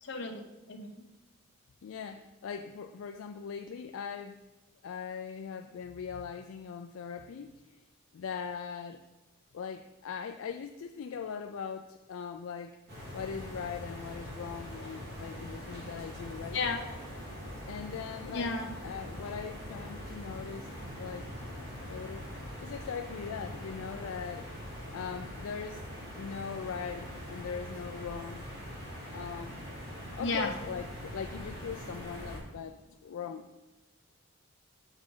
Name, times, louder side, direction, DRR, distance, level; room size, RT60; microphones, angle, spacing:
voice 1, 0.0-1.1 16.5-16.8 18.3-18.7 30.2-30.5, left 3 dB, 55° left, 4 dB, 0.8 m, -33 dB
voice 2, 1.8-4.4 4.8-7.8 8.1-9.1 9.5-12.8 13.1-16.6 17.7-18.5 18.8-20.7 21.0-21.3 21.9-22.3 22.6-24.5 24.9-25.8 26.1-28.7 29.1-29.7 30.0-33.5, left 6 dB, 70° left, 6 dB, 0.3 m, -40 dB
sound 1, 12.9-32.4, equal, 50° right, 2.1 m, -43 dB
6.4 x 6.2 x 3.8 m, 1.0 s
head